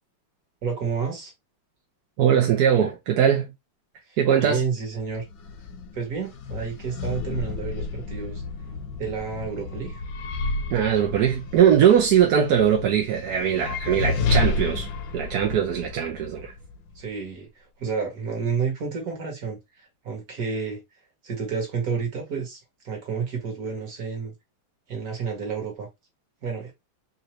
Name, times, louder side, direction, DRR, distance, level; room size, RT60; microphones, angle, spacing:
voice 1, 0.6-1.3 4.1-5.2 5.9-8.4 9.0-10.0 17.0-20.8 21.2-22.6 22.8-24.3 24.9-25.9 26.4-26.7, right 5 dB, 45° right, 1.8 m, -30 dB
voice 2, 2.2-3.5 4.2-4.6 10.7-14.9 15.1-16.5, right 9 dB, 65° right, 1.0 m, -20 dB
sound 1, 4.9-17.1, left 4 dB, 70° left, 1.3 m, -31 dB
4.0 x 2.8 x 3.0 m
omnidirectional pair, 2.4 m